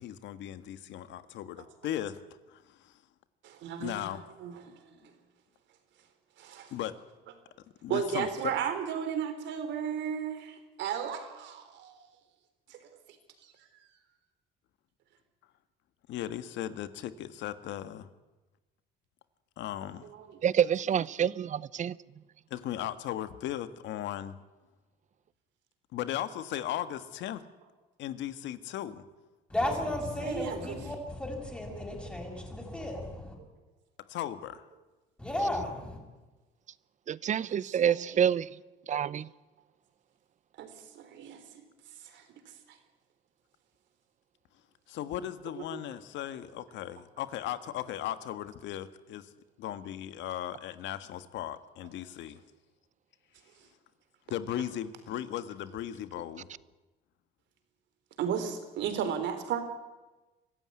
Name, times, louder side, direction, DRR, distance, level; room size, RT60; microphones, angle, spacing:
voice 1, 0.0-2.2 2.5-2.9 3.8-4.2 6.7-7.0 7.8-8.5 16.1-18.1 19.6-20.1 22.5-24.4 25.9-27.4 28.0-29.0 34.1-34.6 44.9-49.3 49.6-52.4 54.3-56.5, left 12 dB, 70° left, 12 dB, 1.6 m, -37 dB
voice 2, 3.4-4.9 6.4-6.7 7.9-12.0 12.7-13.0 13.4-13.5 20.0-20.4 30.2-30.8 37.5-38.2 40.6-41.7 42.0-42.8 45.6-45.8 58.2-59.6, right 8 dB, 70° right, 9 dB, 3.8 m, -35 dB
voice 3, 20.4-22.0 37.1-38.5 38.9-39.3, right 9 dB, 40° right, 20 dB, 0.7 m, -27 dB
voice 4, 29.5-33.3 35.2-36.0, left 1 dB, 5° left, 1 dB, 6.5 m, -34 dB
24.5 x 15.0 x 9.6 m, 1.1 s
cardioid pair, 120°, 19 cm